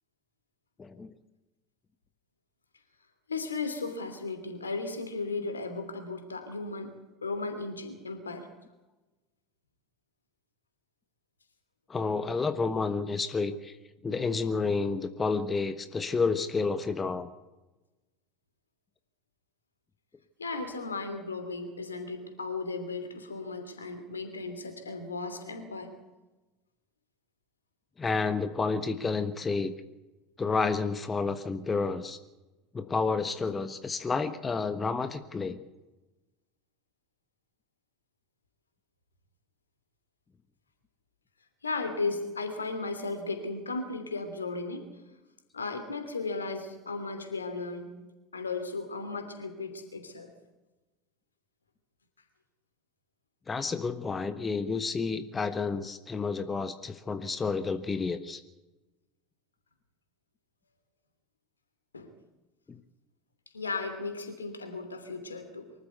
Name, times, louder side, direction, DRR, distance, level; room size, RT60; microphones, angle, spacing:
voice 1, 0.8-1.1 11.9-13.8 14.0-17.3 28.0-29.7 30.4-32.2 32.7-35.6 53.5-58.4 62.7-62.8, left 4 dB, 20° left, 11 dB, 1.3 m, -30 dB
voice 2, 3.3-6.9 7.2-8.5 20.4-25.9 41.6-44.9 45.5-47.9 48.3-50.3 61.9-62.1 63.5-65.7, left 3 dB, 80° left, 8 dB, 3.0 m, -35 dB
24.0 x 14.0 x 8.1 m, 1.1 s
figure-of-eight pair, 70°, 0 cm